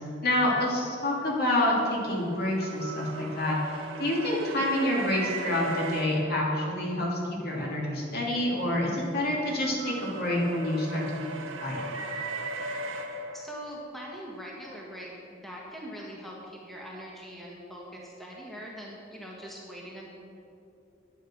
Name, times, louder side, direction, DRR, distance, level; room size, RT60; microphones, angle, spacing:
voice 1, 0.2-3.6 4.0-11.8, left 1 dB, 55° left, -3 dB, 2.6 m, -28 dB
sound 1, 1.5-7.1 8.5-13.8, right 2 dB, 80° right, 1.1 m, -38 dB
voice 2, 13.3-20.1, equal, ahead, -4 dB, 1.5 m, -42 dB
10.5 x 9.0 x 6.2 m, 2.7 s
head